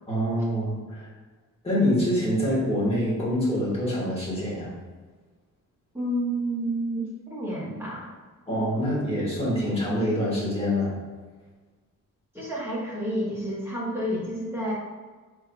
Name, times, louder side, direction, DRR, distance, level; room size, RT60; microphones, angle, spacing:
voice 1, 0.1-1.1 1.6-4.7 8.5-10.9, equal, 20° left, -7 dB, 1.5 m, -25 dB
voice 2, 5.9-8.1 12.3-14.7, right 1 dB, 5° right, -8 dB, 1.2 m, -30 dB
4.5 x 4.3 x 2.3 m, 1.4 s
wide cardioid pair, 170°, 33 cm